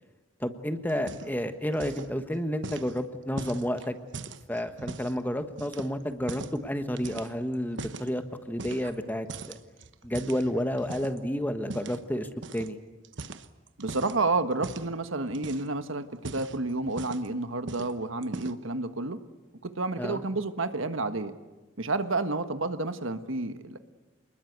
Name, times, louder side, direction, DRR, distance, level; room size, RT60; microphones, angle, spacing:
voice 1, 0.4-4.0 4.5-9.6 10.0-12.8 20.0-20.2, equal, 10° left, 8 dB, 1.3 m, -31 dB
sound 1, 0.9-1.5 1.7-2.1 2.6-5.2 5.6-6.6 7.0-8.1 8.6-9.0 9.3-11.2 11.7-12.0 12.4-12.7 13.0-14.2 14.6-14.9 15.3-15.8 16.1-17.3 17.7-17.9 18.2-18.7, right 3 dB, 65° right, 1.1 m, -40 dB
voice 2, 13.8-19.2 19.6-21.3 21.8-23.8, right 3 dB, 80° right, 10 dB, 1.4 m, -30 dB
28.0 x 21.0 x 8.1 m, 1.2 s
head